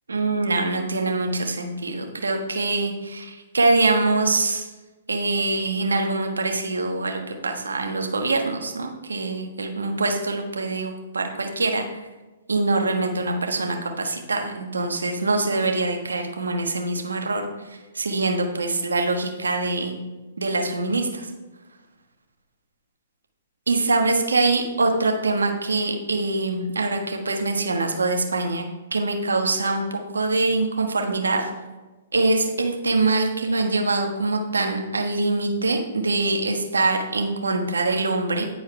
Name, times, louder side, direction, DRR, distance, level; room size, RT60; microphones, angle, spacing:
voice 1, 0.1-4.7 5.1-12.0 12.5-20.0 20.4-21.3 23.7-28.6 28.9-31.5 32.1-38.5, right 3 dB, 85° right, 3 dB, 1.3 m, -24 dB
10.5 x 4.7 x 4.5 m, 1.2 s
hypercardioid pair, 130°, 0 cm